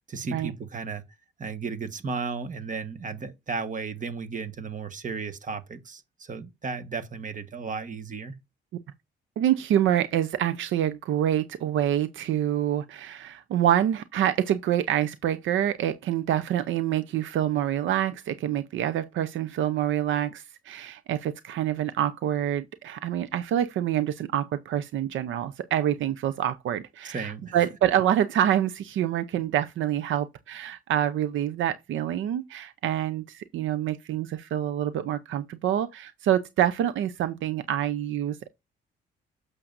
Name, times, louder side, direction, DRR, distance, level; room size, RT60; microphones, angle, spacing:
voice 1, 0.1-1.0 1.4-8.3 27.0-27.7, right 5 dB, 40° right, 1.4 m, -34 dB
voice 2, 9.4-38.5, right 11 dB, 75° right, 0.7 m, -26 dB
8.6 x 6.7 x 2.6 m
cardioid pair, 90°, 20 cm